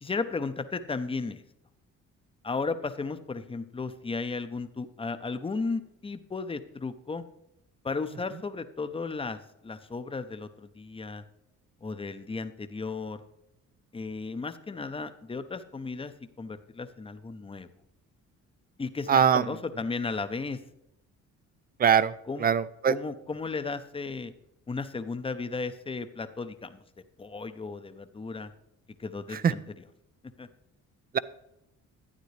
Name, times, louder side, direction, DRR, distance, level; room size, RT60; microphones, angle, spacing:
voice 1, 0.0-1.4 2.4-7.3 7.8-11.2 11.8-13.2 13.9-17.7 18.8-20.6 22.3-22.5 22.9-24.3 24.7-26.8 27.2-28.5 29.0-29.6 30.4-30.5, left 4 dB, 20° left, 10 dB, 0.7 m, -35 dB
voice 2, 19.1-19.6 21.8-22.1 22.4-23.0 29.3-29.5 31.1-31.2, right 8 dB, 30° right, 17 dB, 0.4 m, -22 dB
12.0 x 9.0 x 3.3 m, 0.81 s
cardioid pair, 90°, 30 cm